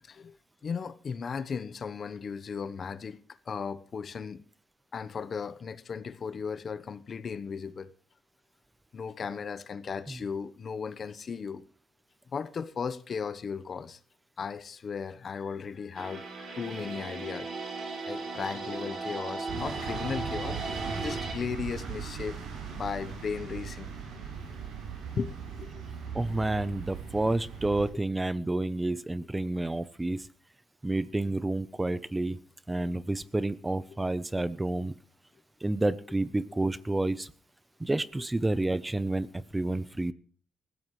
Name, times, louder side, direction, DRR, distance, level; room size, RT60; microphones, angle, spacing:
voice 1, 0.6-3.2 3.5-4.4 4.9-7.9 8.9-11.6 12.3-14.0 14.4-17.5 18.1-20.6 21.0-22.4 22.7-24.0 25.2-25.8 27.9-28.0, left 6 dB, 45° left, 1.0 m, -36 dB
sound 1, 15.9-21.3, right 3 dB, 55° right, 5.4 m, -37 dB
sound 2, 19.5-27.9, right 6 dB, 85° right, 7.9 m, -39 dB
voice 2, 26.1-30.2 30.8-32.4 32.7-34.9 35.6-37.3 37.8-39.3 39.5-40.1, right 2 dB, 15° right, 0.7 m, -29 dB
20.0 x 15.5 x 3.2 m
cardioid pair, 90°, 0 cm